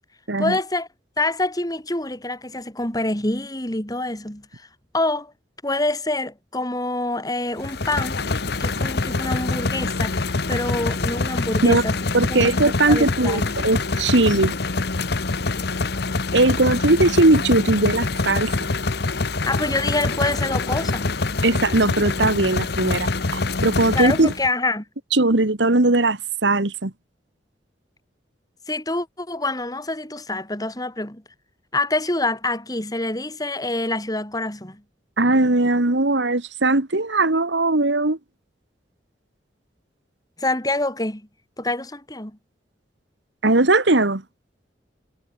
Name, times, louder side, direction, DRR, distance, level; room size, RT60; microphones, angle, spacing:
voice 1, 0.4-0.9 1.2-4.5 4.9-5.3 5.6-8.2 8.6-12.0 12.3-12.5 12.9-13.5 19.4-21.1 23.9-24.8 28.7-31.2 31.7-34.8 40.4-41.2 41.6-42.3, left 2 dB, 20° left, 4.2 m, -26 dB
sound 1, 7.6-24.5, left 3 dB, 60° left, 1.1 m, -25 dB
voice 2, 12.1-14.6 16.3-18.5 21.4-24.3 25.1-26.9 35.2-38.2 43.4-44.2, right 2 dB, 75° right, 1.8 m, -19 dB
head